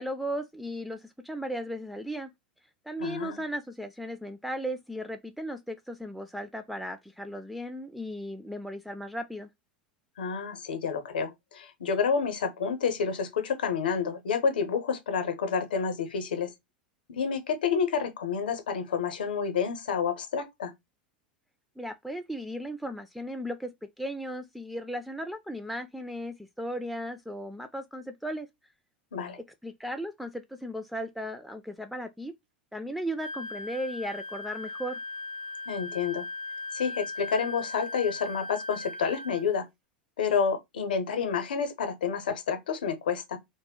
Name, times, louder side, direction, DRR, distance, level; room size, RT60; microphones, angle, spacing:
voice 1, 0.0-2.3 2.9-9.5 21.8-28.5 29.6-32.3 32.7-35.0, equal, ahead, 0.3 m, -36 dB
voice 2, 3.0-3.4 10.2-16.5 17.1-20.7 29.1-29.4 35.7-36.3 36.7-39.7 40.2-43.4, left 6 dB, 75° left, 0.7 m, -29 dB
Wind instrument woodwind instrument, 33.2-39.4, left 3 dB, 70° right, 0.7 m, -38 dB
2.1 x 2.1 x 3.6 m
figure-of-eight pair, 85°, 5 cm